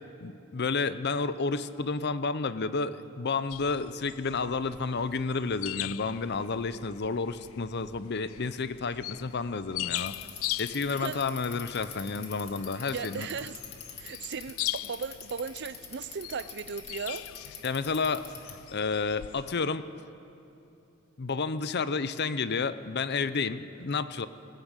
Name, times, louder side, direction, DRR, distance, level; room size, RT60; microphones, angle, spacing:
voice 1, 0.2-10.1 10.6-13.3 17.6-18.2 18.7-19.8 21.2-24.3, left 4 dB, 55° left, 13 dB, 0.7 m, -31 dB
sound 1, 3.5-19.5, left 16 dB, 85° left, 0.4 m, -41 dB
Bicycle, 9.9-18.7, left 6 dB, 30° left, 2.5 m, -44 dB
voice 2, 12.8-13.6 14.0-17.2, right 6 dB, 60° right, 16 dB, 0.5 m, -37 dB
21.0 x 15.5 x 8.2 m, 2.8 s
head